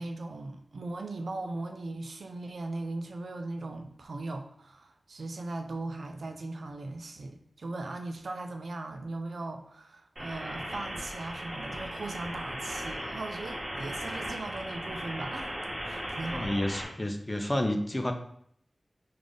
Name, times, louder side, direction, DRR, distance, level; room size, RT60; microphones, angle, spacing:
voice 1, 0.0-15.5 15.8-16.7, right 2 dB, 85° right, 5 dB, 0.3 m, -38 dB
sound 1, 10.2-16.8, equal, 50° right, 1.3 m, -37 dB
voice 2, 16.3-18.1, left 1 dB, 25° left, 5 dB, 0.5 m, -30 dB
3.3 x 2.4 x 3.8 m, 0.65 s
wide cardioid pair, 60°, 0 cm